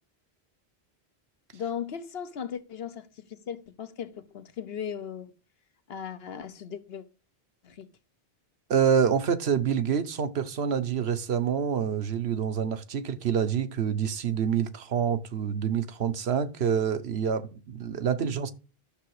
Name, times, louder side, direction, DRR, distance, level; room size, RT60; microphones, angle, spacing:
voice 1, 1.5-5.3 5.9-7.0 7.6-7.9 18.2-18.4, left 8 dB, 75° left, 1.2 m, -37 dB
voice 2, 8.7-18.5, right 7 dB, 85° right, 1.2 m, -27 dB
11.5 x 6.9 x 4.8 m
omnidirectional pair, 1.0 m